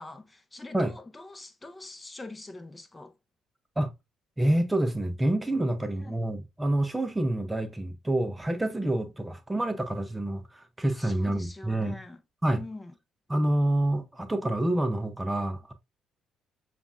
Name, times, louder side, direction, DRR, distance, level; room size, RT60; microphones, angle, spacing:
voice 1, 0.0-3.1 6.0-6.2 11.0-12.2 12.5-12.9, left 2 dB, 20° left, 0.8 m, -44 dB
voice 2, 4.4-12.0 12.4-12.6 13.3-15.7, right 1 dB, 15° right, 0.6 m, -27 dB
6.9 x 2.4 x 2.4 m
hypercardioid pair, 55°, 0 cm